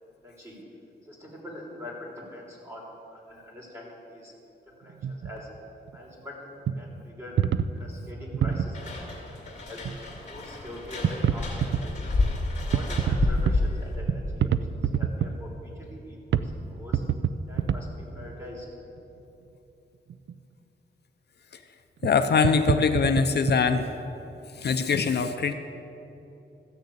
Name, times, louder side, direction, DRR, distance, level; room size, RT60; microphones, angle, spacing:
voice 1, 0.2-0.6 1.0-2.8 3.1-4.3 4.8-5.5 5.9-6.5 6.8-7.4 7.8-9.0 9.3-9.8 10.3-12.1 12.7-14.5 14.8-17.0 17.5-18.7, left 1 dB, 15° right, -3 dB, 3.2 m, -43 dB
sound 1, 4.9-5.4 5.9-6.0 6.7-6.8 7.4-8.7 9.8-10.0 10.4-10.5 11.0-11.8 12.6-13.6 14.1-15.3 16.0-16.1 16.3-16.5 16.8-17.8 18.2-18.3 20.1-20.3 22.0-22.1 22.4-23.6, right 8 dB, 85° right, 0.5 m, -26 dB
sound 2, 8.7-14.0, left 3 dB, 40° left, 2.5 m, -30 dB
voice 2, 22.0-23.9 24.6-25.5, left 5 dB, 65° left, 7 dB, 0.6 m, -23 dB
14.0 x 6.7 x 8.5 m, 2.9 s
wide cardioid pair, 130°, 19 cm